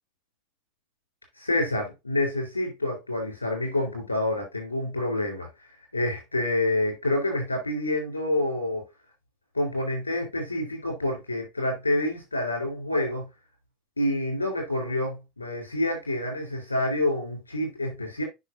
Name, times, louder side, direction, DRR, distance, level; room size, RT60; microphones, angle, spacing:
voice 1, 1.4-5.5 5.9-8.8 9.5-13.3 14.0-18.2, left 1 dB, 90° left, 4.0 m, -27 dB
9.7 x 5.8 x 2.7 m
figure-of-eight pair, 75°, 0 cm